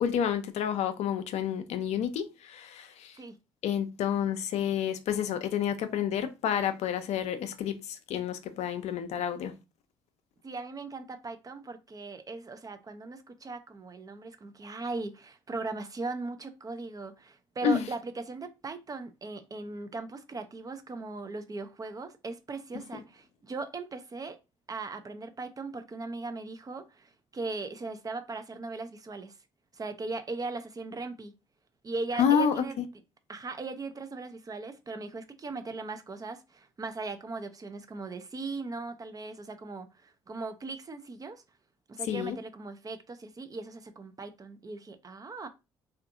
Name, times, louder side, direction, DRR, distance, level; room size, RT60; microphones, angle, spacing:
voice 1, 0.0-3.2 3.6-9.5 17.6-17.8 22.9-23.0 32.1-32.6 42.1-42.4, left 8 dB, 60° left, 0.5 m, -29 dB
voice 2, 10.4-24.4 24.7-29.4 29.7-31.3 31.8-32.8 33.3-41.4 41.9-45.5, right 3 dB, 30° right, 0.5 m, -39 dB
2.6 x 2.4 x 2.4 m
hypercardioid pair, 50°, 13 cm